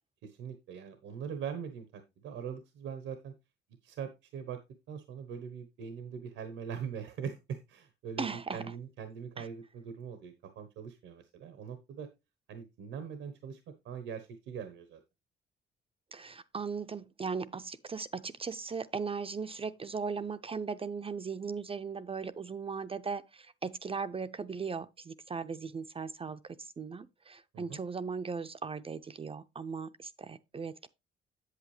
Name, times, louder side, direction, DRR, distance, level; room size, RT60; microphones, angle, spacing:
voice 1, 0.2-3.3 3.8-4.6 4.9-12.1 12.5-15.0 27.5-27.8, right 7 dB, 90° right, 1.1 m, -42 dB
voice 2, 8.2-8.6 9.4-9.5 16.1-30.9, right 5 dB, 30° right, 0.5 m, -38 dB
8.2 x 8.0 x 3.2 m
cardioid pair, 90°, 20 cm